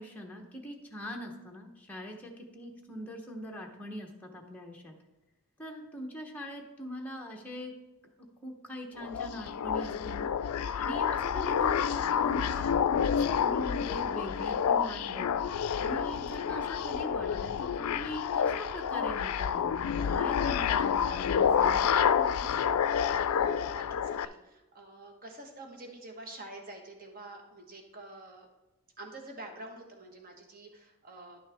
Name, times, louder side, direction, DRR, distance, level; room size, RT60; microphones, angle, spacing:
voice 1, 0.0-4.9 5.6-7.8 8.0-8.1 8.4-10.3 10.8-15.3 15.8-22.5, equal, 5° left, 0 dB, 0.8 m, -42 dB
sound 1, 9.0-24.2, left 7 dB, 85° left, 0.3 m, -29 dB
voice 2, 22.9-28.5 29.0-31.4, right 2 dB, 40° right, 2 dB, 1.3 m, -47 dB
10.5 x 6.4 x 3.4 m, 1.0 s
head